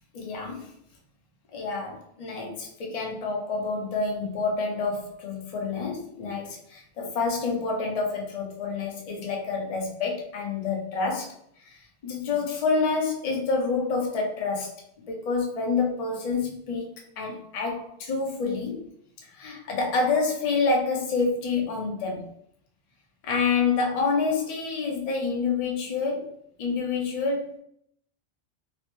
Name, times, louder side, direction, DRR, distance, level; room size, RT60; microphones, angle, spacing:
voice 1, 0.1-0.7 1.5-11.3 11.7-11.8 12.0-14.7 15.1-16.9 17.2-18.8 19.3-22.3 23.2-27.6, left 4 dB, 45° left, 0 dB, 0.5 m, -28 dB
3.0 x 2.0 x 2.9 m, 0.71 s
omnidirectional pair, 1.1 m